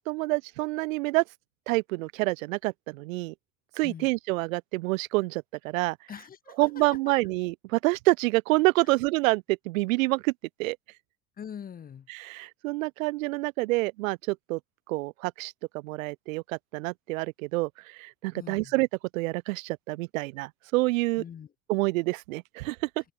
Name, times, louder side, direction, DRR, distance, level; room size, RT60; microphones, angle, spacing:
voice 1, 0.1-1.2 1.7-3.3 3.8-6.0 6.6-10.3 10.6-10.8 12.1-14.6 14.9-15.5 15.8-17.7 18.0-18.9 19.1-21.2 21.7-22.8, right 22 dB, 85° right, 2.1 m, -27 dB
voice 2, 6.1-7.1 8.8-8.9 11.4-12.1 18.3-18.7 21.2-21.5, left 8 dB, 20° left, 4.6 m, -43 dB
cardioid pair, 165°, 39 cm